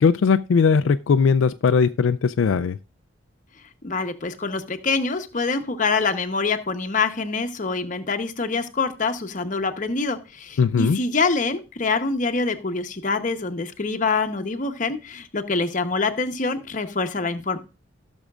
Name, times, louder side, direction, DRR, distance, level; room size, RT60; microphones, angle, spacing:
voice 1, 0.0-2.8 10.6-11.0, left 5 dB, 80° left, 0.4 m, -19 dB
voice 2, 3.8-17.6, left 4 dB, 40° left, 0.9 m, -25 dB
17.0 x 6.3 x 2.4 m
head